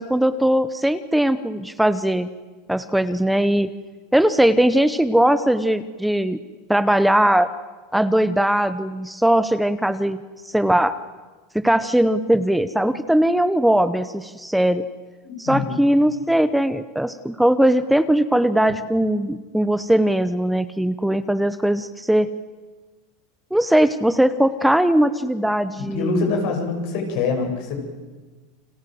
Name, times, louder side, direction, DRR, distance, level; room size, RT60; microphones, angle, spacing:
voice 1, 0.0-2.3 2.7-3.7 4.1-6.4 6.7-7.5 7.9-10.2 10.4-10.9 11.5-14.8 15.4-22.3 23.5-26.2, right 1 dB, ahead, 12 dB, 0.8 m, -19 dB
voice 2, 15.2-15.8 25.8-27.8, left 4 dB, 65° left, 3 dB, 7.3 m, -25 dB
30.0 x 24.5 x 7.8 m, 1.3 s
supercardioid pair, 135°, 0 cm